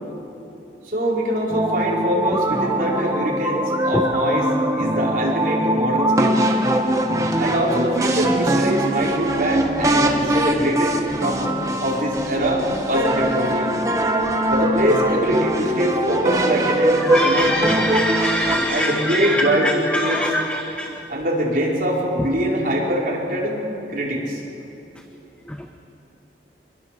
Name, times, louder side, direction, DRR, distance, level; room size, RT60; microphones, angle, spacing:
voice 1, 0.8-4.5 4.7-6.5 7.4-11.4 11.8-13.7 14.5-17.6 18.7-20.2 21.1-23.6 23.9-24.4, equal, 50° right, -3 dB, 4.7 m, -23 dB
sound 1, 1.5-18.6, right 1 dB, 20° right, 1.6 m, -22 dB
voice 2, 17.0-21.0, left 1 dB, 5° left, 4 dB, 0.9 m, -23 dB
25.0 x 21.5 x 6.8 m, 3.0 s
head